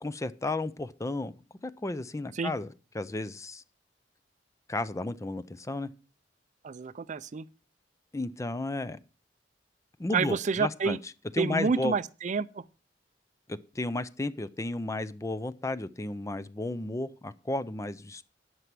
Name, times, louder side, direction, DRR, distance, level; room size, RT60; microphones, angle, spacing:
voice 1, 0.0-1.3 1.6-2.7 2.9-3.6 4.7-5.9 8.1-9.0 10.0-11.0 11.3-12.0 13.5-18.3, left 2 dB, 15° left, 0.5 m, -33 dB
voice 2, 6.6-7.5 10.1-11.0 11.4-12.6, right 5 dB, 40° right, 0.4 m, -29 dB
11.0 x 6.1 x 5.9 m
head